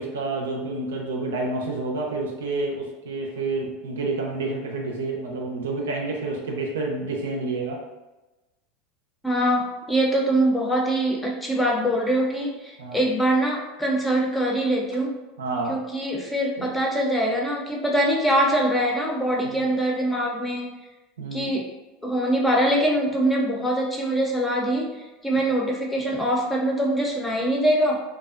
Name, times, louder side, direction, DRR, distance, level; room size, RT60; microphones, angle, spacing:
voice 1, 0.0-7.8 12.8-13.0 15.4-15.8 16.6-16.7 19.4-19.7 21.2-21.5, right 3 dB, 85° right, 0 dB, 0.5 m, -29 dB
voice 2, 9.2-15.1 15.7-20.7 21.3-21.6 22.0-28.0, right 1 dB, 10° left, -2 dB, 0.6 m, -23 dB
2.5 x 2.1 x 2.4 m, 1.1 s
hypercardioid pair, 90°, 0 cm